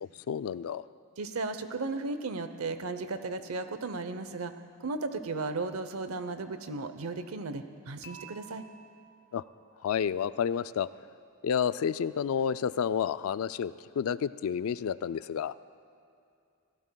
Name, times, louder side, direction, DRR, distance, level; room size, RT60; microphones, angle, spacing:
voice 1, 0.0-0.8 9.3-9.4 9.8-10.9 11.4-15.6, left 7 dB, 70° left, 16 dB, 0.3 m, -30 dB
voice 2, 1.2-4.5 4.8-8.6, right 3 dB, 75° right, 10 dB, 0.8 m, -35 dB
Dishes pots and pans / Chink clink, 8.0-10.2, right 4 dB, 40° left, 1.1 m, -52 dB
26.5 x 16.5 x 2.3 m, 2.5 s
head